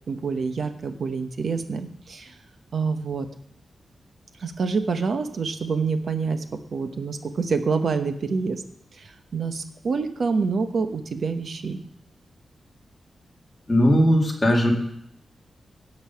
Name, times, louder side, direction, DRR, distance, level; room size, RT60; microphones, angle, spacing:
voice 1, 0.1-2.3 2.7-3.3 4.4-8.6 8.9-11.8, right 4 dB, 55° right, 8 dB, 1.0 m, -27 dB
voice 2, 13.7-14.7, equal, 15° left, -2 dB, 2.3 m, -18 dB
16.5 x 5.6 x 5.7 m, 0.71 s
wide cardioid pair, 155°, 0 cm